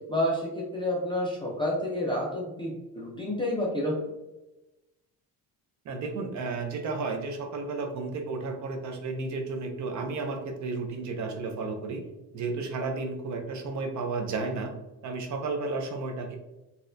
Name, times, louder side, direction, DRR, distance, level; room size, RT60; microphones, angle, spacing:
voice 1, 0.1-4.0, left 1 dB, 15° left, -4 dB, 0.3 m, -29 dB
voice 2, 5.9-12.0 12.3-14.7 15.0-16.4, right 3 dB, 45° right, 4 dB, 0.5 m, -32 dB
4.1 x 2.2 x 2.4 m, 1.0 s
cardioid pair, 180°, 40 cm